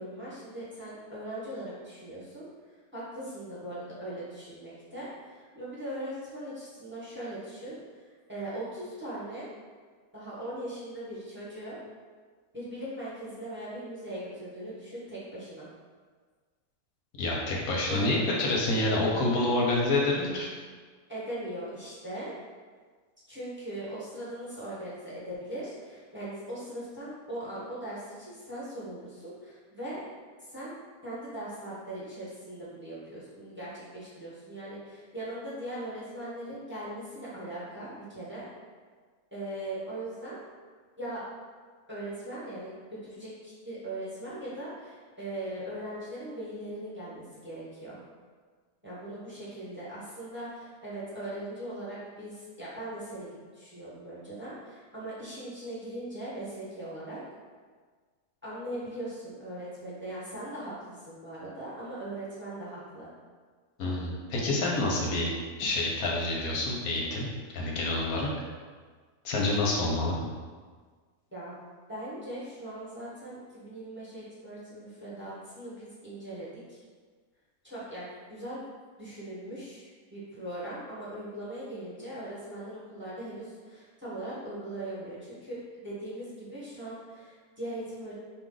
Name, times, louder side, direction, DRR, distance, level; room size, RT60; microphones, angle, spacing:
voice 1, 0.0-8.0 8.3-9.5 10.1-11.8 12.5-15.7 17.9-18.1 21.1-22.3 23.3-30.0 30.4-30.7 31.0-38.5 39.3-40.4 41.0-41.2 41.9-48.0 48.8-57.2 58.4-63.1 71.3-71.5 71.9-76.8 77.6-78.6 79.0-88.1, right 1 dB, 10° right, -8 dB, 1.0 m, -40 dB
voice 2, 17.2-20.5 63.8-65.3 65.6-67.3 67.5-68.3 69.2-70.2, left 2 dB, 65° left, -2 dB, 1.1 m, -27 dB
4.5 x 2.5 x 3.8 m, 1.5 s
omnidirectional pair, 1.8 m